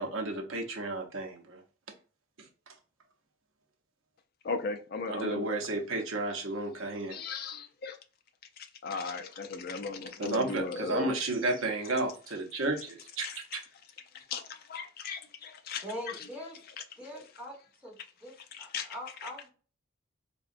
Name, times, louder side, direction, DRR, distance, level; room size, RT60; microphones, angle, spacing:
voice 1, 0.0-1.6 2.4-2.7 5.1-7.2 10.2-13.6, right 2 dB, 65° right, 0.6 m, -33 dB
voice 2, 4.4-5.6 6.3-6.4 7.1-8.0 8.6-11.4 13.2-13.6 14.1-16.3 16.8-17.2 18.5-18.9 19.2-19.3, left 4 dB, 45° left, 0.4 m, -38 dB
voice 3, 15.8-16.6 17.0-17.6 17.8-17.9 18.2-18.3 18.6-19.5, equal, 5° right, 1.2 m, -42 dB
3.6 x 2.2 x 2.4 m
head